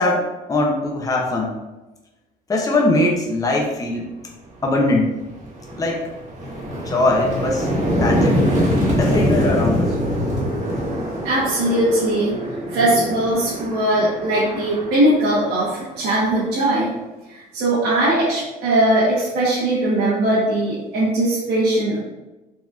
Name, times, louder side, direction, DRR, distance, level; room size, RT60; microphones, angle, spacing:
voice 1, 0.0-1.5 2.5-4.1 4.6-5.1 5.7-6.1 6.8-7.7 8.0-8.5 9.0-10.0, left 2 dB, 20° left, -1 dB, 0.7 m, -21 dB
sound 1, 4.6-4.8 5.2-16.0, equal, 45° right, 1.1 m, -23 dB
voice 2, 11.2-12.4 12.7-17.0 17.3-22.0, right 1 dB, 85° right, -9 dB, 1.1 m, -20 dB
4.0 x 2.8 x 2.4 m, 1.1 s
cardioid pair, 110°, 17 cm